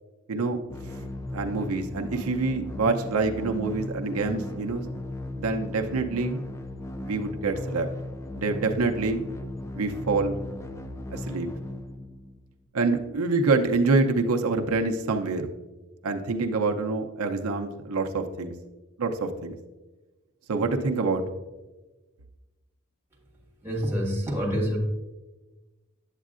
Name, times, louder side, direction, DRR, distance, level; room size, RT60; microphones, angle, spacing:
voice 1, 0.3-0.6 1.3-4.8 5.4-6.4 7.0-7.9 8.3-9.2 9.7-10.3 11.1-11.5 12.7-15.5 16.0-18.5 19.0-19.6 20.5-21.2, right 3 dB, 90° right, 4 dB, 0.6 m, -26 dB
sound 1, 0.7-12.6, left 1 dB, 15° left, 0.4 m, -36 dB
voice 2, 23.6-24.8, equal, 10° right, -2 dB, 1.6 m, -27 dB
8.2 x 8.1 x 2.4 m, 1.1 s
head